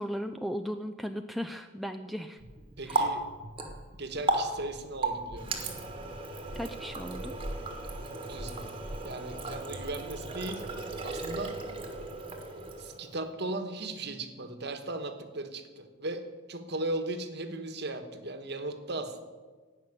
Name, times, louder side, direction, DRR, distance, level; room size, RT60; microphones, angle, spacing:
voice 1, 0.0-2.4 2.8-3.2 6.6-7.3, equal, ahead, 6 dB, 0.3 m, -36 dB
Water tap faucet, 2.4-13.2, right 2 dB, 25° right, 1.4 m, -35 dB
voice 2, 2.8-3.3 3.9-5.8 8.3-8.7 9.0-10.7 11.0-11.6 12.8-19.3, right 2 dB, 50° right, 8 dB, 1.3 m, -37 dB
16.5 x 5.8 x 10.0 m, 1.4 s
head